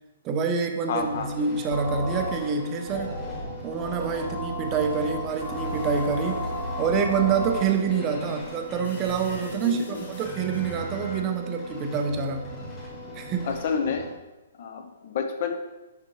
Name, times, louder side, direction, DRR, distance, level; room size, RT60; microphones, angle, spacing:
voice 1, 0.2-3.1 3.6-6.5 6.8-12.6 13.1-13.5, right 6 dB, 20° right, 4 dB, 0.5 m, -27 dB
voice 2, 0.9-1.3 9.6-10.0 13.4-14.0 14.6-15.6, left 6 dB, 45° left, 6 dB, 0.7 m, -29 dB
sound 1, 1.0-14.1, left 1 dB, 10° left, 1.4 m, -35 dB
sound 2, 5.3-10.9, left 2 dB, 85° left, 1.6 m, -50 dB
6.4 x 5.7 x 3.0 m, 1.1 s
hypercardioid pair, 170°, 0 cm